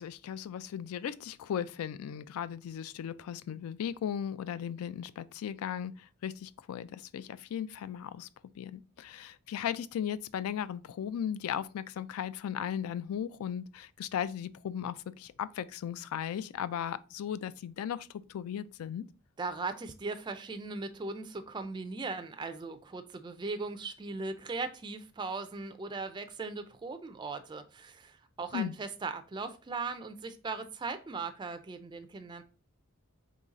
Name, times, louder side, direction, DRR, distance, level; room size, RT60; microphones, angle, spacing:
voice 1, 0.0-8.3 8.6-19.1 28.5-28.7, left 9 dB, 75° left, 0.3 m, -37 dB
voice 2, 19.4-32.4, right 3 dB, 20° right, 0.3 m, -38 dB
3.8 x 3.1 x 3.9 m
head